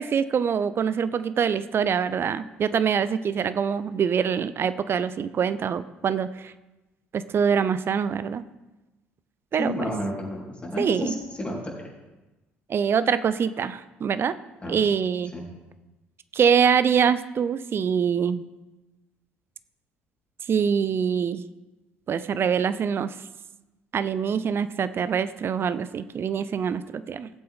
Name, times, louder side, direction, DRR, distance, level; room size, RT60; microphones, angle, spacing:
voice 1, 0.0-6.5 7.1-8.4 9.5-9.7 10.8-11.1 12.7-14.3 14.7-15.3 16.3-18.4 20.5-21.5 22.1-23.1 23.9-27.3, right 7 dB, 40° right, 14 dB, 0.6 m, -24 dB
voice 2, 9.6-11.7 14.6-14.8 15.3-15.4, left 1 dB, 20° left, -3 dB, 4.1 m, -31 dB
17.0 x 7.7 x 3.7 m, 1.1 s
figure-of-eight pair, 55°, 6 cm